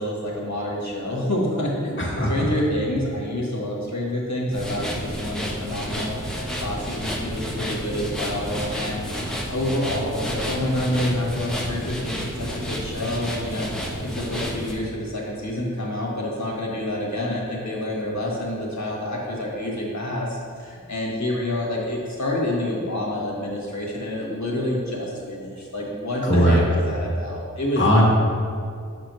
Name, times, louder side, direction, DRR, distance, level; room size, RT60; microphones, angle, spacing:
voice 1, 0.0-1.9 2.3-6.2 6.6-9.0 9.5-28.0, left 1 dB, 60° left, -3 dB, 1.4 m, -28 dB
voice 2, 2.0-2.3 26.2-26.6 27.8-28.0, equal, 35° left, -4 dB, 1.4 m, -18 dB
sound 1, 4.5-14.7, equal, ahead, 0.9 m, -30 dB
6.0 x 5.4 x 3.1 m, 2.2 s
wide cardioid pair, 55°, 33 cm